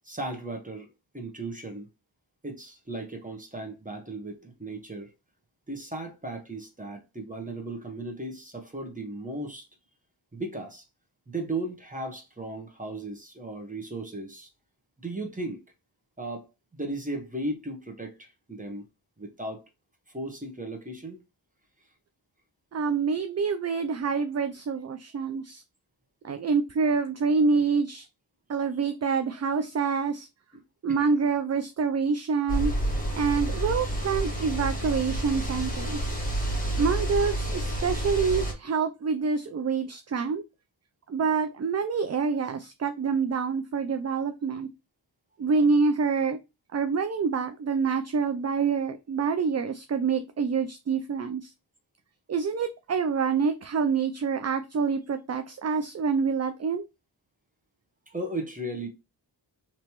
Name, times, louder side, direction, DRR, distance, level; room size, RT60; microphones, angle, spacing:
voice 1, 0.0-0.9 1.1-1.9 2.4-5.1 5.7-9.7 10.3-10.8 11.3-14.5 15.0-15.6 16.2-16.5 16.7-18.9 19.2-19.6 20.1-21.2 30.5-30.6 30.9-31.2 58.1-58.9, right 2 dB, 15° right, 1.2 m, -36 dB
voice 2, 22.7-25.6 26.2-28.1 28.5-30.3 30.8-32.7 33.1-36.1 36.8-40.4 41.1-44.7 45.4-46.4 46.7-51.5 52.3-56.8, right 5 dB, 35° right, 0.4 m, -26 dB
sound 1, 32.5-38.5, right 1 dB, 15° left, 1.6 m, -29 dB
3.2 x 3.0 x 2.9 m
cardioid pair, 45°, 46 cm